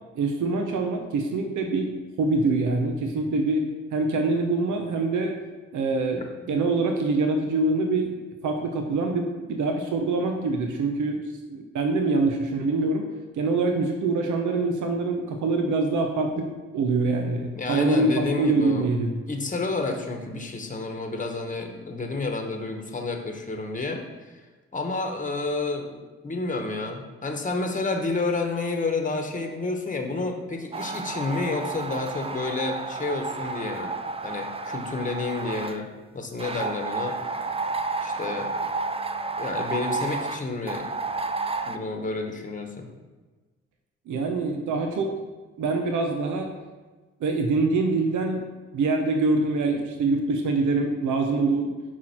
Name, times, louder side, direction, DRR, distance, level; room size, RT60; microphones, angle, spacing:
voice 1, 0.1-5.4 5.7-6.2 6.5-8.2 8.4-11.2 11.5-13.1 13.3-16.5 16.7-19.1 44.1-45.2 45.6-46.6 47.2-51.7, right 3 dB, 70° right, 4 dB, 0.8 m, -25 dB
voice 2, 17.5-18.9 19.3-24.0 24.7-33.9 34.2-37.1 38.0-38.5 39.4-40.9 41.7-42.9, left 3 dB, 25° left, 4 dB, 1.2 m, -30 dB
sound 1, 30.7-35.8 36.4-41.8, right 3 dB, 20° right, 0.5 m, -31 dB
6.1 x 4.4 x 4.4 m, 1.3 s
supercardioid pair, 45°, 31 cm